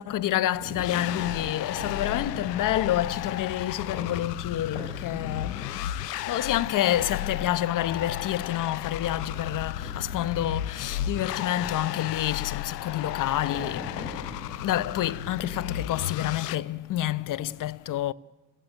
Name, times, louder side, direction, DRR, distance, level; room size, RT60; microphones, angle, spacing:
voice 1, 0.0-5.9 6.3-18.1, left 13 dB, 40° left, 0.7 m, -28 dB
sound 1, 0.5-15.5, left 2 dB, 60° left, 5.1 m, -44 dB
sound 2, 0.8-16.6, left 11 dB, 85° left, 0.8 m, -34 dB
27.5 x 16.5 x 7.9 m
hypercardioid pair, 55°, 47 cm